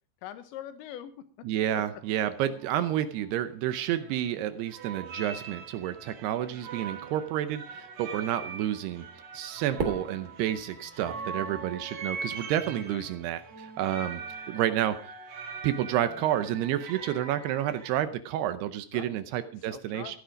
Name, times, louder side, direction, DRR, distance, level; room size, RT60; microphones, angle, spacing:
voice 1, 0.2-1.3 1.7-1.8 12.9-13.0 18.9-19.2 19.7-20.2, left 11 dB, 85° left, 11 dB, 3.4 m, -42 dB
voice 2, 1.4-9.1 9.3-14.2 14.5-15.0 15.6-20.2, right 11 dB, 75° right, 12 dB, 2.6 m, -30 dB
sound 1, 2.0-2.1 2.4-2.8 3.7-4.4 4.7-17.9, right 5 dB, 50° right, 2.6 m, -42 dB
Fireworks, 9.8-12.1, right 3 dB, 30° right, 2.0 m, -37 dB
14.5 x 11.5 x 5.1 m, 0.43 s
omnidirectional pair, 5.2 m